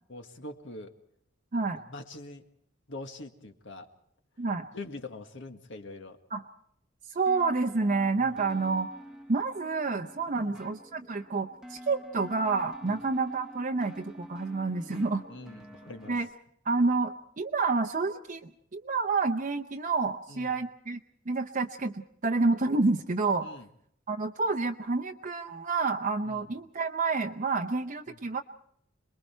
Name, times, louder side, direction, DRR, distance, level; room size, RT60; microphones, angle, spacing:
voice 1, 0.1-0.9 1.8-2.5 2.9-3.9 4.7-6.2 8.2-8.4 10.2-10.6 12.8-13.0 14.7-16.2 20.3-20.6 23.4-23.7 26.3-26.4 28.1-28.2, left 2 dB, 65° left, 6 dB, 1.8 m, -44 dB
voice 2, 7.1-8.9 9.3-15.2 16.1-16.3 16.6-21.0 21.3-23.5 24.1-28.4, right 3 dB, 40° right, 5 dB, 0.7 m, -29 dB
sound 1, 7.3-16.2, equal, 5° right, 1.1 m, -48 dB
27.5 x 21.5 x 4.5 m, 0.68 s
head